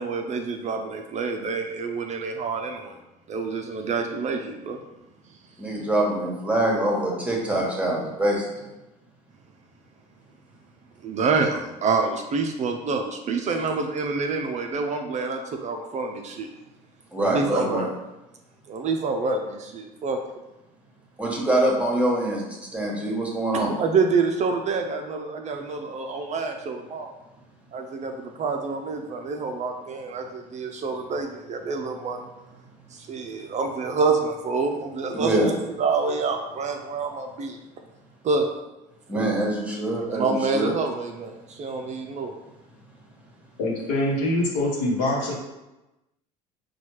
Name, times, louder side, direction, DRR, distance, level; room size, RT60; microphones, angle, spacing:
voice 1, 0.0-3.0 3.3-4.8 11.0-16.5 17.2-17.9 18.7-20.2 23.5-27.1 27.7-32.3 32.9-37.6 38.2-38.5 39.1-39.3 40.1-42.4, right 4 dB, 35° right, 4 dB, 0.4 m, -27 dB
voice 2, 5.6-8.7 17.1-17.9 21.2-22.4 22.7-23.7 35.1-35.5 39.1-40.7, right 1 dB, 5° right, -2 dB, 1.1 m, -24 dB
voice 3, 43.6-45.3, left 1 dB, 75° left, -2 dB, 1.0 m, -24 dB
4.2 x 2.3 x 3.1 m, 0.99 s
hypercardioid pair, 70°, 20 cm